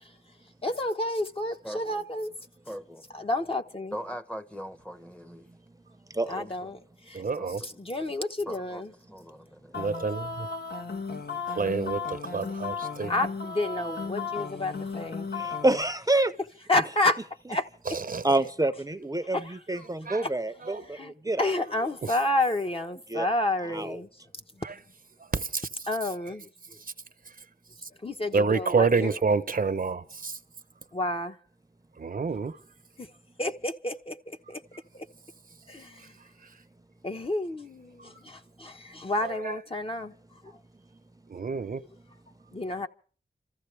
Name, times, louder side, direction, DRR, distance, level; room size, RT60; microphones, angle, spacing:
voice 1, 0.6-2.3 3.1-4.0 6.3-6.8 7.1-7.2 7.6-8.9 13.1-15.3 16.7-17.2 17.5-17.7 19.3-19.6 20.2-20.3 20.9-21.1 21.4-24.1 24.5-24.6 25.9-26.5 28.0-29.1 30.9-31.4 33.0-33.1 33.4-34.6 34.9-35.0 35.7-36.1 37.0-40.1 42.5-42.9, left 2 dB, 35° left, 1.1 m, -30 dB
voice 2, 1.6-2.1 2.6-3.1 3.9-5.5 6.3-6.7 7.1-7.5 8.5-9.8, equal, 5° left, 0.9 m, -41 dB
voice 3, 7.1-7.6 9.8-10.5 11.5-13.1 17.9-18.3 20.0-20.3 20.6-20.8 22.0-22.1 24.6-24.8 25.2-25.7 26.8-26.9 27.8-27.9 28.3-30.4 32.0-32.6 36.0-36.1 36.4-36.5 39.2-39.5 41.3-41.8, right 4 dB, 55° right, 0.8 m, -28 dB
sound 1, 9.7-15.8, left 5 dB, 75° left, 1.4 m, -35 dB
voice 4, 15.4-16.3 18.2-20.8 21.3-21.5 23.1-23.3 23.7-24.0, right 2 dB, 20° right, 0.7 m, -27 dB
28.0 x 14.5 x 3.3 m
wide cardioid pair, 85°, 17 cm